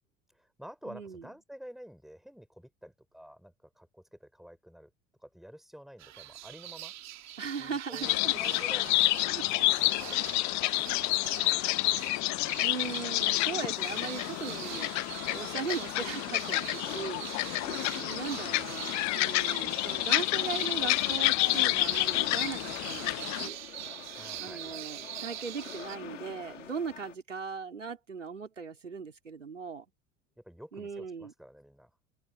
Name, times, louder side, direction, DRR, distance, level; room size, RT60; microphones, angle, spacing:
voice 1, 0.3-4.9 5.2-6.9 7.6-12.0 24.1-24.8 30.4-31.9, equal, ahead, 6.1 m, -50 dB
voice 2, 0.9-1.3 7.4-8.5 9.3-9.4 10.1-10.3 12.6-14.9 15.2-23.6 24.4-29.8 30.7-31.3, right 5 dB, 90° right, 4.3 m, -39 dB
sound 1, 6.0-26.0, right 14 dB, 45° right, 3.5 m, -43 dB
sound 2, 8.0-23.5, left 22 dB, 50° left, 1.0 m, -29 dB
sound 3, 8.8-27.2, left 9 dB, 80° left, 2.4 m, -48 dB
figure-of-eight pair, 70°, 36 cm